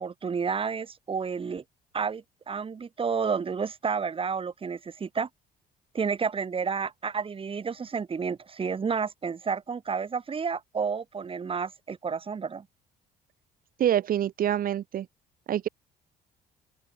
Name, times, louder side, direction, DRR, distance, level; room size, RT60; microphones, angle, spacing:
voice 1, 0.0-1.6 1.9-5.3 5.9-12.6, right 5 dB, 30° right, 6.9 m, -30 dB
voice 2, 13.8-15.1 15.5-15.7, right 11 dB, 60° right, 6.3 m, -26 dB
open air
cardioid pair, 110°, 17 cm